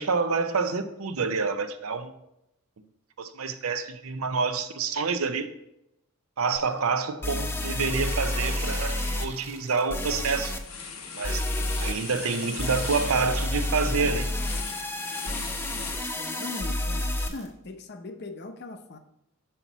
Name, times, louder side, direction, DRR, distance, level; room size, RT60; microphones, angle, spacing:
voice 1, 0.0-2.1 3.2-5.5 6.4-10.6 11.1-11.5 11.8-14.3, right 4 dB, 85° right, 0.6 m, -28 dB
sound 1, 6.6-6.7 7.2-9.3 9.9-10.6 11.2-11.9 12.6-17.3, left 1 dB, 10° left, 0.3 m, -30 dB
sound 2, 7.8-10.2 11.6-13.5 14.5-14.6 15.0-17.5, right 3 dB, 30° right, 1.3 m, -44 dB
sound 3, 9.4-9.7 10.0-16.6, left 5 dB, 85° left, 1.0 m, -39 dB
voice 2, 16.2-19.0, left 2 dB, 50° left, 0.7 m, -40 dB
6.0 x 5.8 x 4.0 m
head